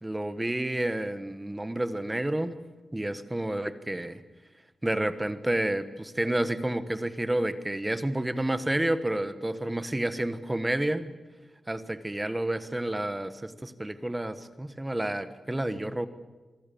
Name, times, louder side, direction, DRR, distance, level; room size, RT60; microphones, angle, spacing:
voice 1, 0.0-2.6 2.9-4.2 4.8-11.2 11.7-16.1, right 1 dB, 10° right, 12 dB, 1.3 m, -30 dB
26.5 x 24.0 x 7.1 m, 1.2 s
wide cardioid pair, 155°, 0 cm